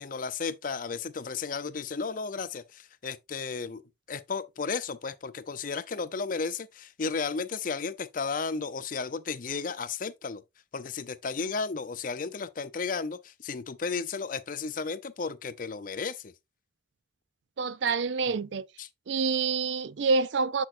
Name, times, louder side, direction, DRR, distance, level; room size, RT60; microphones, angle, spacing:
voice 1, 0.0-3.8 4.1-10.4 10.7-16.3 18.8-18.9, left 5 dB, 50° left, 0.5 m, -34 dB
voice 2, 17.6-18.7 19.1-20.6, right 4 dB, 80° right, 0.4 m, -27 dB
7.5 x 6.1 x 2.5 m
head